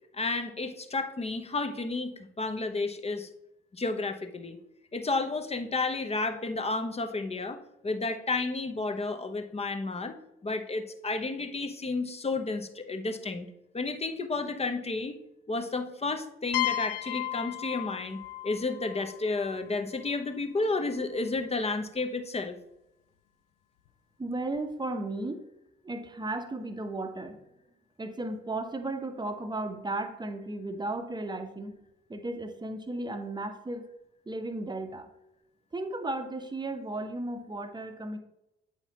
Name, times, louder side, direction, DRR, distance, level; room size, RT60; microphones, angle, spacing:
voice 1, 0.1-3.3 3.7-4.6 4.9-10.1 10.4-13.5 13.7-15.2 15.5-22.5, left 3 dB, 20° left, 7 dB, 0.8 m, -32 dB
sound 1, 16.5-20.2, left 15 dB, 70° left, 0.4 m, -35 dB
voice 2, 24.2-25.4 25.8-27.4 28.0-31.8 32.1-33.8 34.3-35.1 35.7-38.2, right 2 dB, 15° right, 8 dB, 0.9 m, -35 dB
9.0 x 5.7 x 2.9 m, 0.87 s
figure-of-eight pair, 40°, 29 cm